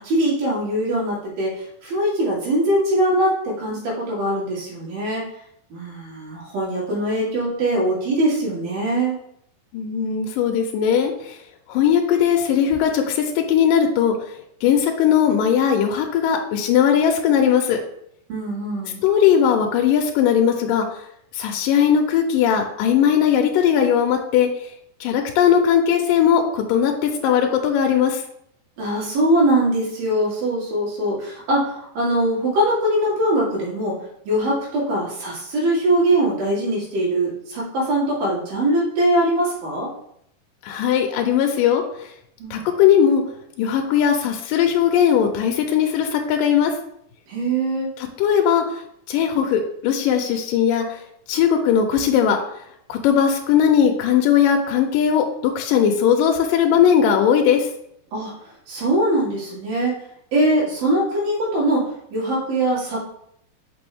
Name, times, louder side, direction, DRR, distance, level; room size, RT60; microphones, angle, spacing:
voice 1, 0.0-5.3 5.7-9.2 18.3-19.0 28.8-39.9 42.4-42.6 47.3-47.9 58.1-59.9 60.3-63.0, right 1 dB, 85° right, -5 dB, 4.1 m, -22 dB
voice 2, 9.7-11.4 11.7-14.1 14.6-17.8 19.0-21.0 21.3-24.5 25.0-28.2 40.6-42.1 42.5-43.2 43.6-46.7 48.0-48.8 49.1-51.0 51.3-52.4 52.9-55.2 55.6-57.7, left 8 dB, 80° left, 3 dB, 2.2 m, -18 dB
6.0 x 5.5 x 3.5 m, 0.72 s
omnidirectional pair, 4.1 m